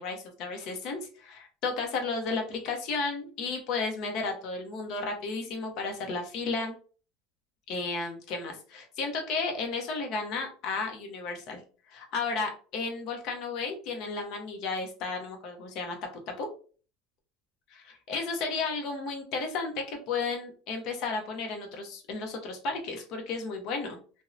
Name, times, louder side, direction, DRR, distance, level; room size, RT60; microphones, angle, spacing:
voice 1, 0.0-6.7 7.7-11.6 11.9-16.0 16.3-16.5 17.7-24.0, left 4 dB, 45° left, 3 dB, 0.6 m, -33 dB
2.6 x 2.0 x 2.4 m, 0.39 s
cardioid pair, 160°, 0 cm